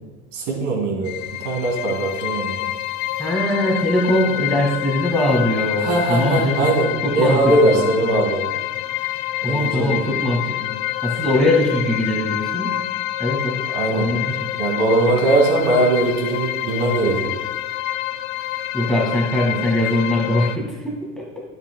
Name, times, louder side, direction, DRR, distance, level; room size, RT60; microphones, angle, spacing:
voice 1, 0.3-1.1 1.4-2.7 5.8-8.5 9.5-10.0 13.7-14.1 14.6-17.3, right 2 dB, 55° right, -1 dB, 2.5 m, -20 dB
sound 1, 1.0-20.6, left 15 dB, 60° left, 0.5 m, -27 dB
voice 2, 3.2-6.7 7.0-7.9 9.4-10.7 11.0-12.7 13.2-13.6 13.9-14.6 18.7-21.4, left 1 dB, ahead, -3 dB, 2.1 m, -21 dB
11.5 x 8.0 x 2.3 m, 1.3 s
figure-of-eight pair, 75°, 48 cm